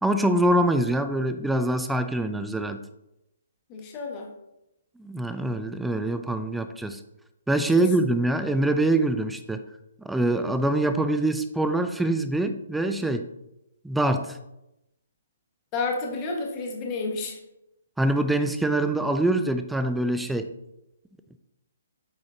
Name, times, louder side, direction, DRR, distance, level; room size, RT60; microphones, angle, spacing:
voice 1, 0.0-2.8 5.0-7.0 7.5-9.6 10.0-13.3 13.8-14.4 18.0-20.5, right 1 dB, 5° right, 9 dB, 0.4 m, -24 dB
voice 2, 3.7-4.3 15.7-17.4, left 3 dB, 25° left, 1 dB, 1.5 m, -30 dB
8.4 x 4.8 x 2.7 m, 0.88 s
hypercardioid pair, 145°, 0 cm